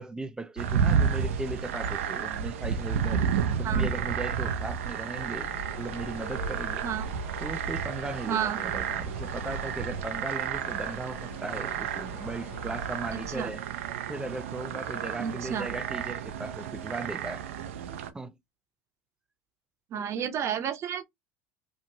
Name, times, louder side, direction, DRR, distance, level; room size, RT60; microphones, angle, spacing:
voice 1, 0.0-3.2 3.6-6.8 7.4-13.7 14.1-17.5 17.9-18.3, right 2 dB, 10° right, 0.4 m, -37 dB
sound 1, 0.6-18.1, right 7 dB, 80° right, 0.4 m, -31 dB
sound 2, 5.1-13.4, left 1 dB, 85° left, 1.5 m, -43 dB
voice 2, 8.3-8.6 13.1-13.5 15.2-15.7 19.9-21.1, right 8 dB, 45° right, 0.7 m, -31 dB
2.8 x 2.5 x 2.8 m
hypercardioid pair, 85°, 7 cm